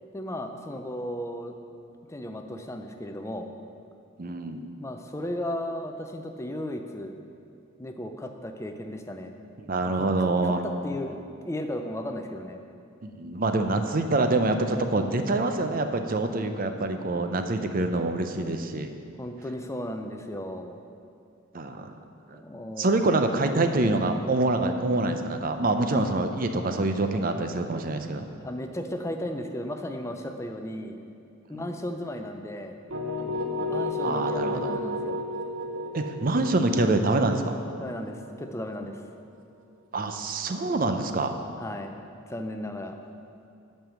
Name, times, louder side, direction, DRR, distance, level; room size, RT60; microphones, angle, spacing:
voice 1, 0.1-1.5 2.0-3.5 4.8-7.1 7.8-9.3 9.9-11.2 11.4-12.6 19.2-20.8 21.8-21.9 22.3-23.1 25.9-26.1 28.4-31.0 31.5-32.8 33.7-35.2 37.8-39.0 41.6-42.0 42.3-43.0, left 1 dB, 15° left, 5 dB, 0.5 m, -35 dB
voice 2, 4.2-4.6 9.7-10.6 13.0-18.9 21.5-21.9 22.3-22.4 22.8-28.2 31.5-31.7 34.0-34.8 35.9-37.6 39.9-41.4, right 2 dB, 45° right, 7 dB, 0.6 m, -26 dB
sound 1, 32.9-38.8, left 1 dB, 70° right, 1.0 m, -32 dB
8.9 x 5.6 x 7.0 m, 2.6 s
head